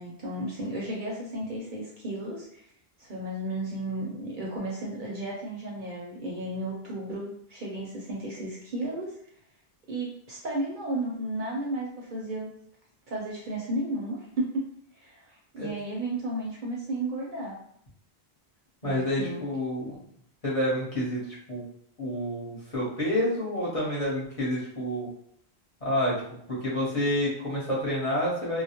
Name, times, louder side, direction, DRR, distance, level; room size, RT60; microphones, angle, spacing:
voice 1, 0.0-2.6 3.0-9.2 9.9-12.5 13.1-14.6 15.0-15.3 15.5-17.6 18.8-19.4, right 1 dB, 55° right, -2 dB, 0.7 m, -33 dB
voice 2, 18.8-20.0 20.4-21.2 21.5-21.6 22.0-25.1 25.8-28.6, left 1 dB, 35° left, -7 dB, 0.9 m, -28 dB
2.2 x 2.0 x 2.7 m, 0.67 s
omnidirectional pair, 1.1 m